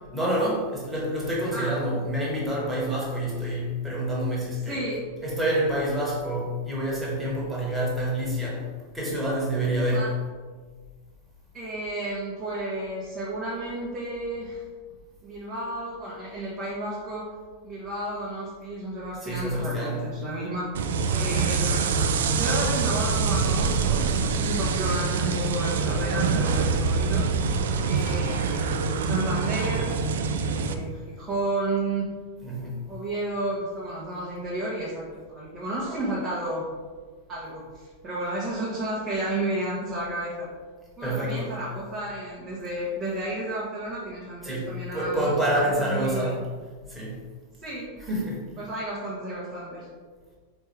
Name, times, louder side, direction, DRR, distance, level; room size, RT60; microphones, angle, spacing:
voice 1, 0.1-4.8 5.2-8.6 8.9-10.1 19.2-20.1 27.9-28.2 32.4-32.8 41.0-41.5 44.4-46.4 46.9-47.2 48.1-48.4, right 1 dB, 5° right, -5 dB, 1.5 m, -27 dB
voice 2, 4.7-5.0 9.9-10.1 11.5-14.6 15.2-17.3 17.6-20.7 21.1-27.2 27.8-29.9 30.3-32.0 32.9-36.6 37.3-40.5 41.0-46.3 47.6-48.1 48.6-49.9, right 1 dB, 25° right, -6 dB, 1.0 m, -32 dB
sound 1, 20.7-30.7, right 5 dB, 60° right, 0.3 m, -25 dB
4.4 x 3.2 x 3.3 m, 1.5 s
figure-of-eight pair, 90°, 0 cm